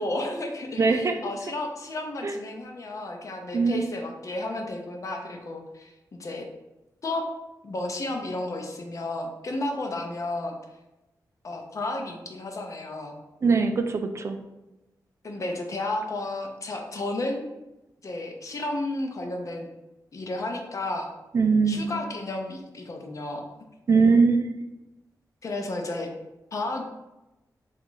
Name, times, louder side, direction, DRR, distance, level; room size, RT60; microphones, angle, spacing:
voice 1, 0.0-5.9 6.2-6.5 7.0-7.3 7.6-10.5 11.4-13.1 15.2-17.5 18.0-19.7 20.1-21.1 21.6-23.5 25.4-26.1 26.5-26.8, left 2 dB, 50° left, 3 dB, 0.5 m, -32 dB
voice 2, 0.8-1.2 2.2-2.3 3.5-3.8 13.4-14.4 21.3-21.9 23.9-24.5, right 4 dB, 40° right, 6 dB, 0.3 m, -21 dB
2.8 x 2.4 x 3.8 m, 1.0 s
cardioid pair, 70°, 7 cm